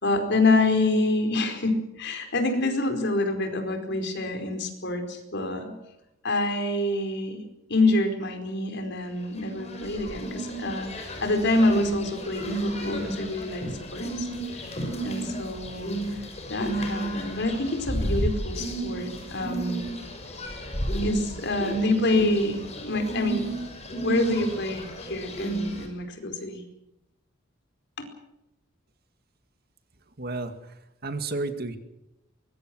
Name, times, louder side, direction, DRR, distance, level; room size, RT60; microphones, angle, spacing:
voice 1, 0.0-5.7 6.2-7.4 7.7-13.6 13.9-14.3 14.5-14.8 15.0-19.8 21.0-23.5 24.0-26.6 28.0-28.1, left 2 dB, 60° left, 6 dB, 4.8 m, -27 dB
sound 1, 9.4-25.9, right 1 dB, 35° left, 6.1 m, -32 dB
voice 2, 30.2-30.7 31.0-31.8, right 2 dB, 50° right, 8 dB, 2.1 m, -32 dB
24.5 x 22.5 x 6.3 m, 0.90 s
head